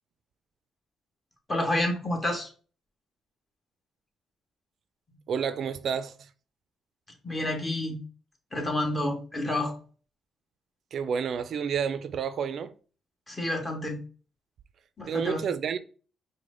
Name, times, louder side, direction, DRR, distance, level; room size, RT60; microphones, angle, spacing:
voice 1, 1.5-2.5 7.2-8.0 8.5-9.7 13.3-14.0 15.0-15.4, left 1 dB, 25° left, 1.5 m, -29 dB
voice 2, 5.3-6.1 10.9-12.7 15.1-15.8, right 7 dB, 60° right, 0.3 m, -30 dB
4.7 x 2.1 x 3.8 m
cardioid pair, 90°, 0 cm